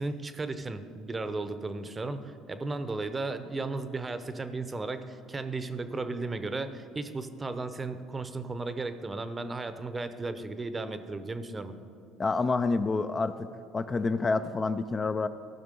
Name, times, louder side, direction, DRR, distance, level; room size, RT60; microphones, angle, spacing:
voice 1, 0.0-11.8, right 3 dB, 25° right, 11 dB, 0.7 m, -35 dB
voice 2, 12.2-13.5 13.7-15.3, left 3 dB, 30° left, 10 dB, 0.4 m, -28 dB
14.0 x 5.9 x 5.3 m, 2.5 s
supercardioid pair, 85°, 0 cm